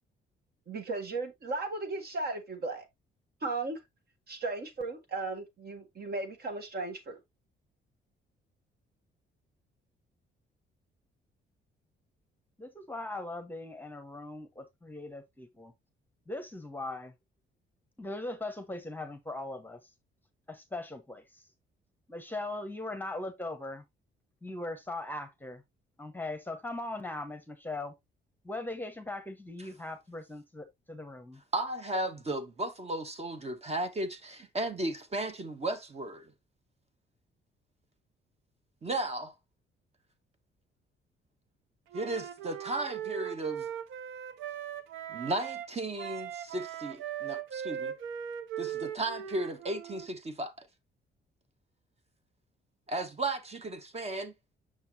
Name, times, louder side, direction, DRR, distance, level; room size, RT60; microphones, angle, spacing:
voice 1, 0.7-2.9 3.4-3.8 4.3-7.2, right 3 dB, 55° right, 1.8 m, -36 dB
voice 2, 12.6-15.7 16.3-17.1 18.0-19.8 20.5-21.2 22.1-23.8 24.4-25.6 26.0-27.9 28.4-31.4, left 2 dB, 10° left, 1.0 m, -39 dB
voice 3, 31.5-36.2 38.8-39.3 41.9-43.7 45.1-47.9 48.6-50.5 52.9-54.3, right 2 dB, 30° right, 1.3 m, -35 dB
Wind instrument woodwind instrument, 41.9-45.7 46.0-50.1, right 9 dB, 85° right, 0.7 m, -39 dB
6.4 x 5.8 x 2.7 m
cardioid pair, 90°, 20 cm